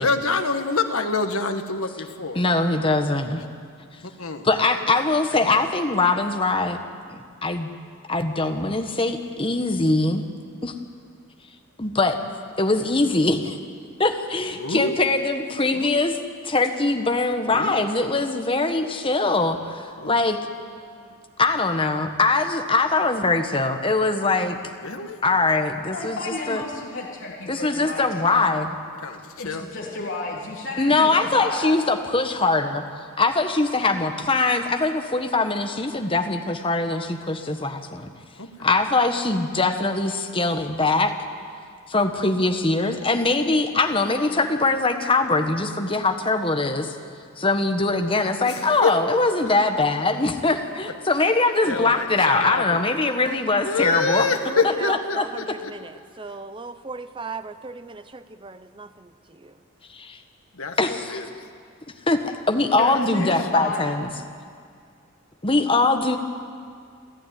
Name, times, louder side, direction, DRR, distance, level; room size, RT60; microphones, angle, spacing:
voice 1, 0.0-2.4 4.0-4.5 5.4-5.5 14.5-15.0 15.7-16.0 17.5-17.8 20.0-20.1 24.8-25.2 29.0-29.7 38.4-38.7 48.5-48.9 51.6-52.9 53.6-55.7 60.5-61.3 62.8-63.4, left 4 dB, 70° left, 7 dB, 1.6 m, -27 dB
voice 2, 2.3-3.4 4.4-6.8 7.1-7.7 8.1-10.3 10.6-10.7 11.8-12.2 12.6-13.6 14.0-16.2 16.4-20.4 21.4-24.6 25.2-26.6 27.5-28.7 30.8-32.8 33.2-38.1 38.6-41.1 41.9-46.9 47.4-54.3 54.9-55.6 59.9-60.2 60.8-61.2 62.1-62.2 62.5-64.1 65.4-66.2, left 3 dB, 25° left, 5 dB, 1.3 m, -22 dB
voice 3, 25.9-28.4 29.4-31.8 62.8-64.0, left 2 dB, 55° left, -4 dB, 3.4 m, -32 dB
voice 4, 53.6-59.6, right 3 dB, 20° right, 11 dB, 0.7 m, -37 dB
29.0 x 12.0 x 9.5 m, 2.2 s
head